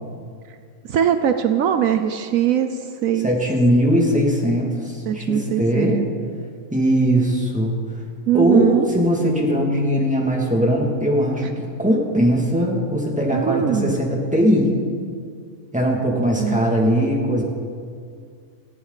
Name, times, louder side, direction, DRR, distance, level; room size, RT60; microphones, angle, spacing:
voice 1, 0.9-3.3 5.1-6.1 8.3-8.9 13.3-14.0 16.4-16.6, right 9 dB, 75° right, 8 dB, 1.1 m, -21 dB
voice 2, 3.2-6.0 6.7-7.8 8.3-14.8 15.7-17.4, equal, 5° right, -2 dB, 2.5 m, -20 dB
20.5 x 15.0 x 4.1 m, 2.2 s
omnidirectional pair, 1.5 m